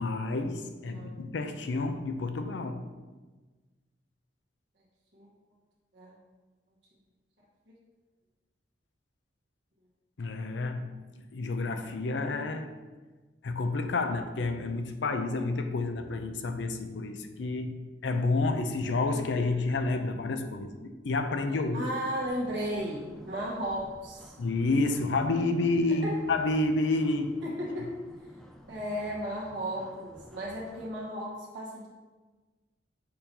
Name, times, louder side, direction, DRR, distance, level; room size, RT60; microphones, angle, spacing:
voice 1, 0.0-2.9 10.2-12.8 13.4-21.9 24.4-27.4, left 3 dB, 70° left, 0.5 m, -30 dB
voice 2, 21.7-24.3 26.0-26.2 27.4-27.9 28.7-31.9, equal, 70° right, 1.3 m, -35 dB
sound 1, 22.2-30.9, equal, 5° left, 0.3 m, -52 dB
6.7 x 2.9 x 5.3 m
head